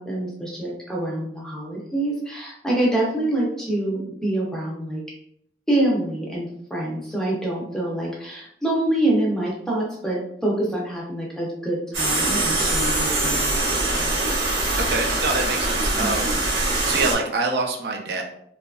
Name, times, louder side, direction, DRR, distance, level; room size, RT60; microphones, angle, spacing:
voice 1, 0.0-5.0 5.7-13.6 13.9-14.2 16.0-16.1, right 1 dB, 5° left, -4 dB, 0.5 m, -26 dB
sound 1, 11.9-17.2, right 2 dB, 85° right, 0.8 m, -23 dB
voice 2, 14.8-16.3 16.6-18.2, right 3 dB, 60° right, 1 dB, 0.4 m, -26 dB
2.7 x 2.3 x 2.3 m, 0.73 s
head